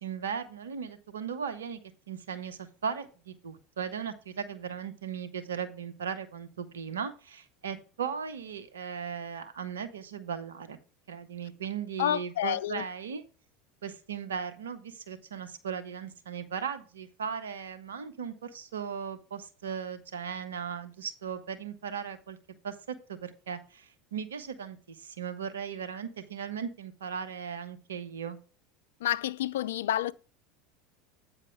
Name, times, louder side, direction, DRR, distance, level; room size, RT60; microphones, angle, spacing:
voice 1, 0.0-1.8 2.1-10.8 11.1-13.2 13.8-22.4 22.6-28.4, right 7 dB, 80° right, 1.0 m, -37 dB
voice 2, 12.0-12.8 29.0-30.1, left 12 dB, 75° left, 0.4 m, -29 dB
8.8 x 4.7 x 4.5 m
hypercardioid pair, 80°, 0 cm